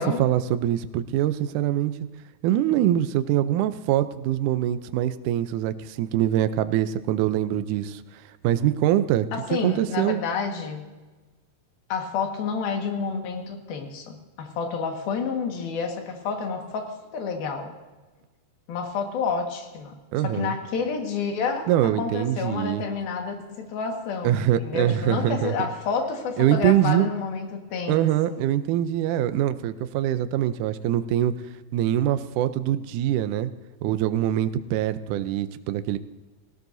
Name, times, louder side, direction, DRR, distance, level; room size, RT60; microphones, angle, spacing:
voice 1, 0.0-1.9 2.4-8.0 8.4-9.3 9.6-10.2 20.1-20.5 21.7-22.8 24.2-25.5 26.4-27.1 27.9-31.3 31.7-33.5 33.8-36.0, right 12 dB, 85° right, 11 dB, 1.8 m, -23 dB
voice 2, 9.3-11.0 11.9-17.7 18.7-19.9 20.2-28.4, left 5 dB, 75° left, 3 dB, 3.5 m, -29 dB
18.5 x 17.5 x 2.7 m, 1.2 s
omnidirectional pair, 4.3 m